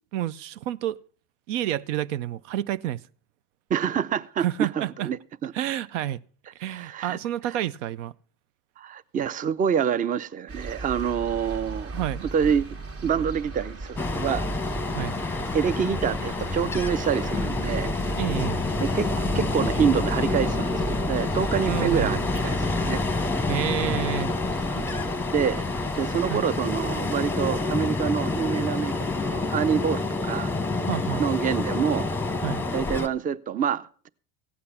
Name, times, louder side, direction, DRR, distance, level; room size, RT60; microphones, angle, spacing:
voice 1, 0.1-1.0 1.5-3.0 4.4-5.1 5.5-6.2 6.6-8.1 11.9-12.2 14.9-15.2 18.2-18.6 21.7-22.3 23.5-24.3 26.3-26.4 30.8-31.2 32.4-32.6, right 12 dB, 75° right, 0.6 m, -29 dB
voice 2, 3.7-5.5 6.6-7.2 8.8-12.7 13.0-14.5 15.5-17.9 18.8-19.1 19.3-23.0 24.7-24.9 25.3-25.7 26.0-30.5 31.2-32.1 32.7-34.1, right 7 dB, 20° right, 0.5 m, -27 dB
sound 1, 10.5-27.2, right 2 dB, 40° right, 1.7 m, -35 dB
Ocean, 14.0-33.1, left 3 dB, 5° left, 0.9 m, -28 dB
15.5 x 8.6 x 5.6 m
hypercardioid pair, 85°, 37 cm